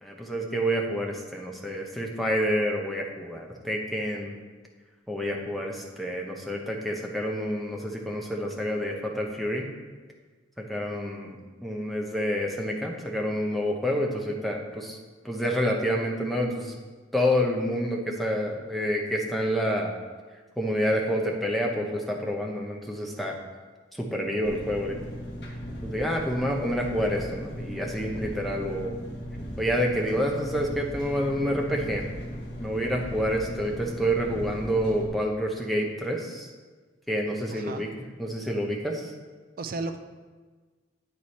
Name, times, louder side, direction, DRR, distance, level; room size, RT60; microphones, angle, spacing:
voice 1, 0.0-4.4 5.1-9.7 10.6-15.0 15.2-16.7 17.1-19.9 20.6-23.3 24.0-25.0 25.8-29.0 29.6-32.1 32.6-36.5 37.1-37.9 38.2-39.0, equal, ahead, -1 dB, 0.8 m, -28 dB
Engine, 24.4-35.1, equal, 60° left, 1.3 m, -37 dB
voice 2, 37.5-37.8 39.6-40.0, right 3 dB, 50° right, 6 dB, 0.5 m, -33 dB
8.6 x 4.8 x 4.2 m, 1.4 s
head